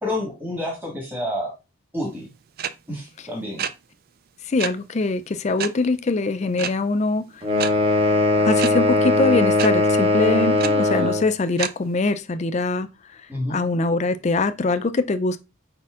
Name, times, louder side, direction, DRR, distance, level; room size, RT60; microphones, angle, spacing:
voice 1, 0.0-1.5 1.9-2.3 2.9-3.6 13.3-13.6, left 1 dB, 10° right, 1.4 m, -29 dB
sound 1, 2.6-2.7 3.6-3.7 4.6-4.7 5.6-5.7 6.6-6.7 7.6-7.7 8.6-8.7 9.6-9.7 10.6-10.7 11.6-11.7, right 8 dB, 45° right, 0.3 m, -26 dB
voice 2, 4.4-7.4 8.3-13.2 13.5-15.4, left 3 dB, 35° left, 0.3 m, -23 dB
sound 2, 7.4-11.3, left 1 dB, 25° right, 0.9 m, -19 dB
5.1 x 4.3 x 2.4 m
head